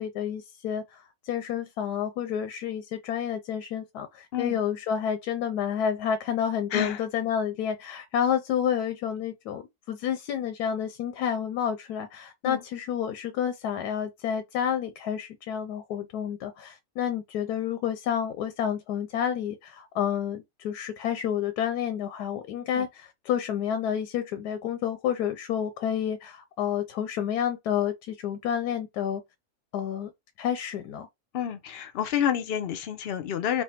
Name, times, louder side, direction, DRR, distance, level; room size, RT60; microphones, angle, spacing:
voice 1, 0.0-29.2 29.7-30.1 30.4-31.1, left 9 dB, 85° left, 1.1 m, -29 dB
voice 2, 6.7-7.0 12.4-12.6 22.7-22.9 31.3-33.6, left 9 dB, 60° left, 0.6 m, -29 dB
3.3 x 2.2 x 4.2 m
omnidirectional pair, 1.6 m